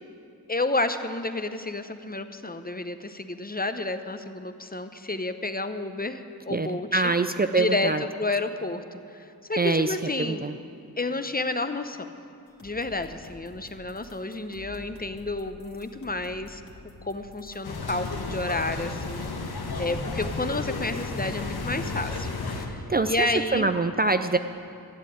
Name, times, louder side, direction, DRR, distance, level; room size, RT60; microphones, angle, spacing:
voice 1, 0.5-7.1 7.5-7.9 8.2-10.5 11.0-12.1 12.6-16.6 17.0-23.7, left 2 dB, 25° left, 9 dB, 0.8 m, -30 dB
voice 2, 6.5-8.0 9.6-10.6 22.9-24.4, right 3 dB, 25° right, 9 dB, 0.5 m, -25 dB
sound 1, 12.5-22.2, left 2 dB, 55° left, 2.5 m, -49 dB
sound 2, 17.6-22.7, left 3 dB, 85° left, 1.2 m, -33 dB
13.5 x 7.5 x 8.7 m, 2.6 s
cardioid pair, 45°, 37 cm